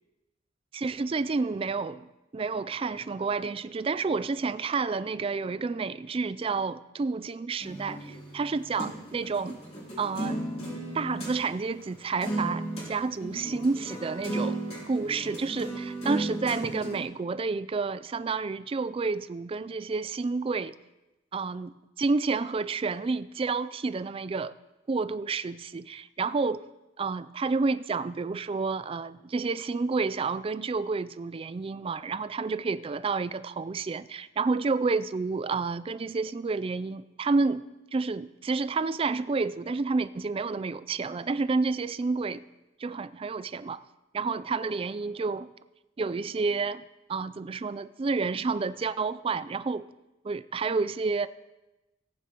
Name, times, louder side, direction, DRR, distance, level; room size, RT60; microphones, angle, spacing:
voice 1, 0.7-9.6 10.0-10.4 10.9-14.6 14.9-20.7 21.3-21.7 22.0-24.5 24.9-26.7 27.0-37.6 37.9-42.4 42.8-43.8 44.1-45.5 46.0-46.8 47.1-49.9 50.2-51.3, right 4 dB, 30° right, 0.3 m, -30 dB
sound 1, 7.6-11.4 11.8-11.9 12.2-12.9 13.2-17.0, right 1 dB, 30° left, 3.1 m, -35 dB
18.0 x 9.4 x 2.9 m
head